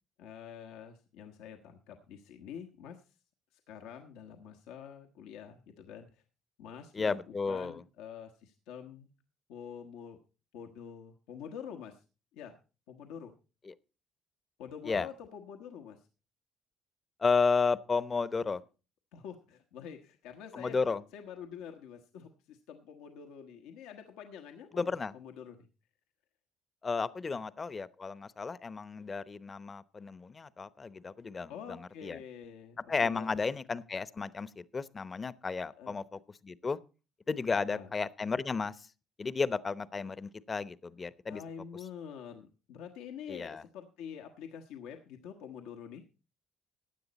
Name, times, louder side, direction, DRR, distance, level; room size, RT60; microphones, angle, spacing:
voice 1, 0.2-3.2 3.5-6.2 6.6-9.1 9.5-10.2 10.5-12.0 12.3-12.6 12.9-13.3 14.6-16.1 19.1-20.8 21.1-25.7 27.3-27.4 31.5-33.4 35.8-35.9 37.5-37.9 41.3-46.0, left 8 dB, 85° left, 4 dB, 1.2 m, -47 dB
voice 2, 6.9-7.8 13.7-13.8 14.9-15.1 17.2-18.6 20.5-21.0 24.7-25.1 26.8-32.2 32.9-36.8 37.3-38.7 39.2-41.4 43.3-43.6, left 4 dB, 35° left, 16 dB, 0.8 m, -33 dB
15.5 x 9.6 x 4.1 m, 0.34 s
supercardioid pair, 75°, 0 cm